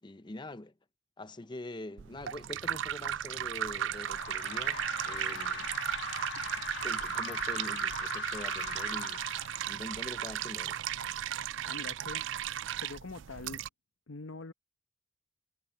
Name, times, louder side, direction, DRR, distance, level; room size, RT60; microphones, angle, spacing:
voice 1, 0.0-0.7 1.2-5.7 6.8-9.2 9.7-10.8, left 1 dB, 20° left, 0.7 m, -44 dB
sound 1, 2.0-13.7, right 10 dB, 65° right, 0.4 m, -35 dB
sound 2, 3.1-10.2, left 6 dB, 60° left, 1.5 m, -42 dB
voice 2, 11.7-12.3 12.8-13.6 14.1-14.5, left 3 dB, 75° left, 1.0 m, -43 dB
head